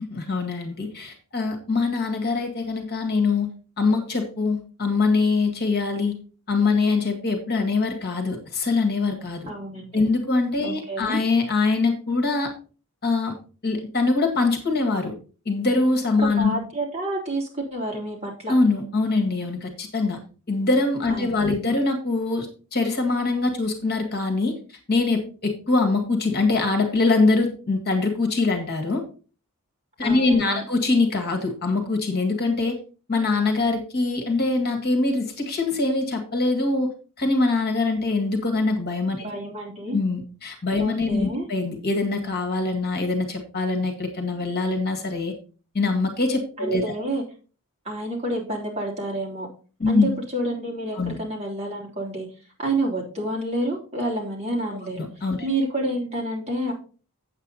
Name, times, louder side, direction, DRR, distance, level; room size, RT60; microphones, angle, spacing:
voice 1, 0.0-3.5 3.8-6.1 6.5-9.5 9.9-12.5 13.0-13.4 13.6-15.1 15.5-16.5 18.5-20.2 20.5-24.6 24.9-29.0 30.0-32.8 33.1-36.9 37.2-39.2 39.9-45.3 45.7-46.8 49.8-50.1 51.0-51.2 55.0-55.5, left 3 dB, 45° left, 3 dB, 1.9 m, -23 dB
voice 2, 9.5-10.0 10.6-11.2 16.2-18.5 21.1-21.6 30.0-30.6 39.2-40.0 40.8-41.4 46.6-47.2 47.8-49.5 49.9-52.3 52.6-55.0 55.4-56.7, right 1 dB, 30° right, -1 dB, 3.1 m, -29 dB
8.1 x 8.1 x 4.1 m, 0.37 s
head